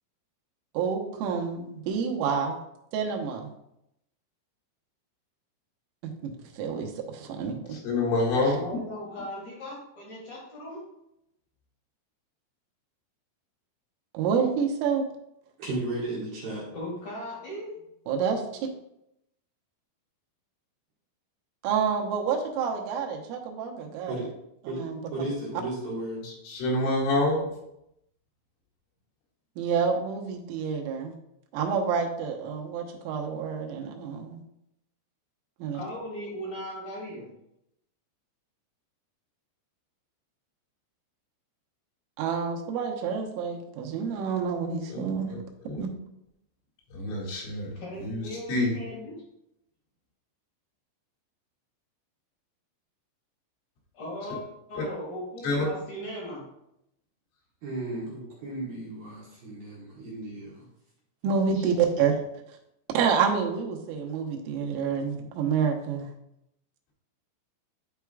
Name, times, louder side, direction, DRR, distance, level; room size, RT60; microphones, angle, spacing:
voice 1, 0.8-2.6 2.9-3.5 6.5-7.6 14.1-15.0 18.1-18.4 21.6-24.2 24.7-25.1 29.6-31.1 31.5-34.4 35.6-35.8 42.2-45.3 45.8-45.9 61.2-62.2 63.0-66.1, right 6 dB, 90° right, 2 dB, 3.6 m, -28 dB
voice 2, 7.7-8.6 26.2-27.5 44.9-45.4 45.6-45.8 46.9-47.7 48.0-48.2 48.5-48.8 54.8-54.9 55.4-55.7, left 2 dB, 80° left, -5 dB, 4.6 m, -27 dB
voice 3, 8.4-9.8 10.1-10.8 16.7-17.8 35.7-37.3 47.7-49.1 53.9-54.4 54.7-56.4, left 1 dB, 50° left, -6 dB, 2.6 m, -38 dB
voice 4, 15.6-16.7 24.1-24.3 24.7-24.8 25.1-26.3 57.6-60.6 61.6-61.7, right 2 dB, 60° right, -5 dB, 2.8 m, -34 dB
12.5 x 4.6 x 2.4 m, 0.81 s
omnidirectional pair, 5.7 m